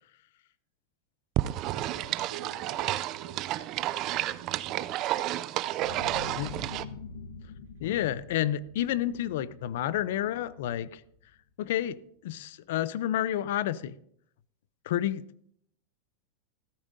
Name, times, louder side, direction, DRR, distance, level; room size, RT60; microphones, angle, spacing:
sound 1, 1.4-6.9, right 15 dB, 30° right, 0.3 m, -31 dB
voice 1, 1.5-3.9 4.2-5.3 5.6-6.6, right 7 dB, 85° right, 0 dB, 3.4 m, -49 dB
sound 2, 5.8-11.3, left 4 dB, 80° left, 1.1 m, -45 dB
voice 2, 7.8-11.0 11.6-12.0 12.2-13.9 14.9-15.2, left 12 dB, 60° left, 18 dB, 0.5 m, -30 dB
14.0 x 12.5 x 2.7 m, 0.68 s
supercardioid pair, 170°, 0 cm